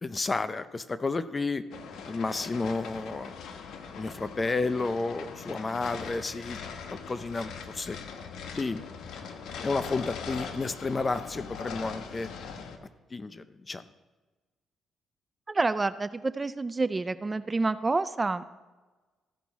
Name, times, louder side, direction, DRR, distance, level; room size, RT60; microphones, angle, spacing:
voice 1, 0.0-1.6 2.1-3.4 3.7-6.6 6.9-8.0 8.5-8.8 9.6-12.3 13.1-13.8, left 3 dB, 30° left, 13 dB, 0.5 m, -31 dB
sound 1, 1.7-12.8, left 6 dB, 75° left, 0.9 m, -41 dB
voice 2, 15.5-18.5, right 3 dB, 25° right, 14 dB, 0.4 m, -28 dB
14.5 x 5.8 x 4.1 m, 1.3 s
cardioid pair, 90°, 0 cm